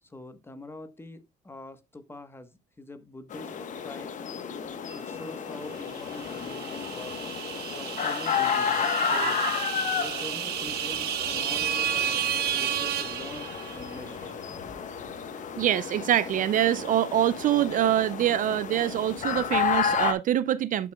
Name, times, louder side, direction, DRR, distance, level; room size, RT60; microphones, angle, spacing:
voice 1, 0.0-3.5 3.8-4.1 4.9-7.2 7.8-9.5 9.9-14.4, left 2 dB, 15° left, 1.1 m, -44 dB
sound 1, 3.3-20.1, left 7 dB, 45° left, 1.1 m, -32 dB
sound 2, 4.9-12.1, right 1 dB, 30° left, 5.5 m, -55 dB
sound 3, 6.0-14.0, right 10 dB, 70° right, 1.1 m, -32 dB
voice 2, 9.0-9.5 15.6-20.9, right 11 dB, 50° right, 0.4 m, -25 dB
11.0 x 5.9 x 2.2 m
cardioid pair, 110°, 17 cm